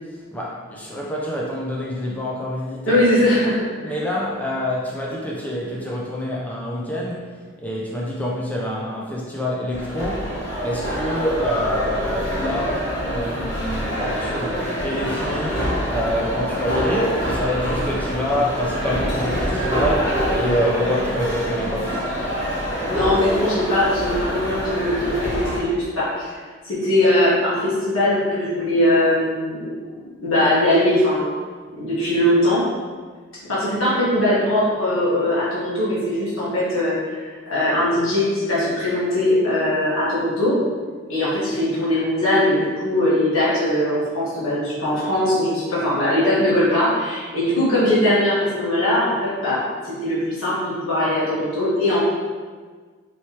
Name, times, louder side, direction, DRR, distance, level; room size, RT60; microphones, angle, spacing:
voice 1, 0.3-3.3 3.8-7.2 7.6-22.0, equal, 5° left, -4 dB, 0.5 m, -26 dB
voice 2, 2.9-4.0 22.9-26.3 26.6-29.9 30.2-31.3 31.8-32.6 33.5-40.5 41.1-52.0, left 1 dB, 80° left, -9 dB, 1.5 m, -20 dB
sound 1, 9.7-25.6, equal, 60° left, 1.3 m, -25 dB
4.4 x 3.2 x 2.9 m, 1.5 s
head